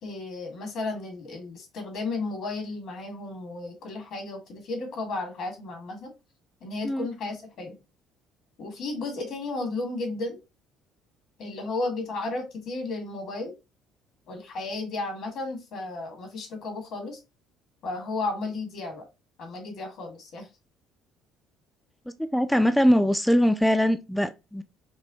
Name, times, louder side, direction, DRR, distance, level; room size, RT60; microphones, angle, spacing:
voice 1, 0.0-6.1 6.6-7.8 8.6-10.4 11.4-13.5 14.3-17.2 17.8-19.1 19.4-20.5, left 3 dB, 60° left, 1.5 m, -33 dB
voice 2, 22.3-24.6, equal, 5° left, 0.4 m, -22 dB
5.3 x 2.1 x 2.8 m
hypercardioid pair, 60°, 0 cm